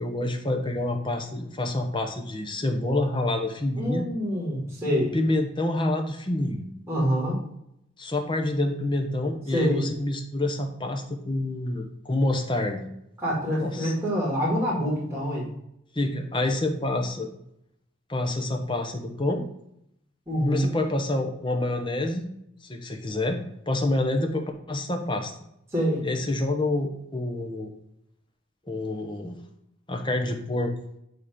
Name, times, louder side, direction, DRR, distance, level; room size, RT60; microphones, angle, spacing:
voice 1, 0.0-4.1 4.9-6.7 8.0-12.9 13.5-13.9 15.9-17.3 18.1-19.4 20.4-22.2 22.6-23.4 23.7-25.3 26.0-27.7 28.7-29.4 29.9-30.7, left 2 dB, 25° left, 4 dB, 0.9 m, -27 dB
voice 2, 3.8-5.1 6.9-7.4 9.5-9.8 13.2-15.5 20.3-20.7 25.7-26.0, equal, 15° right, -7 dB, 2.2 m, -26 dB
8.7 x 3.1 x 5.0 m, 0.78 s
head